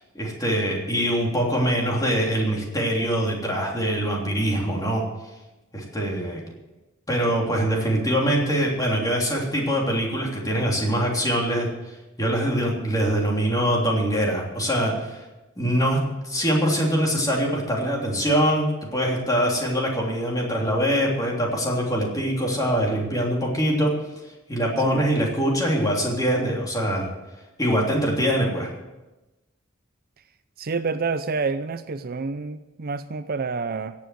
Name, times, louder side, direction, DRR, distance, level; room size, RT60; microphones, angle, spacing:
voice 1, 0.1-5.0 5.7-6.4 7.1-11.7 12.2-15.2 15.6-23.9 24.5-27.1 27.6-28.7, equal, 20° left, -2 dB, 3.2 m, -23 dB
voice 2, 30.6-33.9, right 4 dB, 50° right, 12 dB, 0.5 m, -28 dB
17.0 x 7.4 x 7.7 m, 1.1 s
head